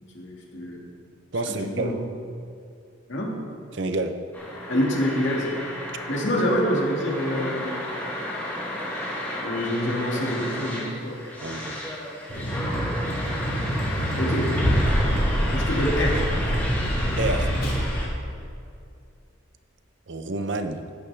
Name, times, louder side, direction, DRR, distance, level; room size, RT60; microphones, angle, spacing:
voice 1, 0.1-0.8 1.5-1.9 3.1-3.4 4.7-5.5 6.1-7.8 9.4-11.2 14.2-14.6 15.5-16.3, equal, 65° left, -2 dB, 2.0 m, -26 dB
voice 2, 1.3-1.9 3.7-4.1 11.4-11.8 17.2-17.5 20.1-20.8, right 2 dB, 60° right, 8 dB, 0.7 m, -28 dB
sound 1, 4.3-18.1, equal, 10° left, 1.8 m, -29 dB
Vehicle, 12.3-17.8, equal, 45° left, 3.2 m, -28 dB
14.0 x 9.9 x 3.4 m, 2.4 s
head